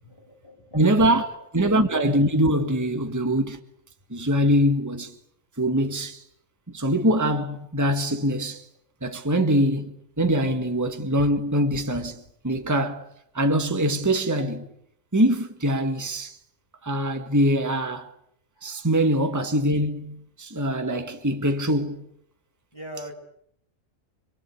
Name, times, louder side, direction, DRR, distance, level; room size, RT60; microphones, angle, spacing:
voice 1, 0.0-0.9 18.6-18.8 22.7-23.1, equal, 20° left, 7.2 m, -41 dB
voice 2, 0.7-3.6 4.1-5.1 5.6-6.2 6.7-8.6 9.0-13.1 13.3-14.7 15.1-16.4 16.8-18.1 18.6-22.1 23.0-23.1, equal, 15° right, 1.8 m, -23 dB
27.5 x 23.5 x 8.6 m
omnidirectional pair, 1.4 m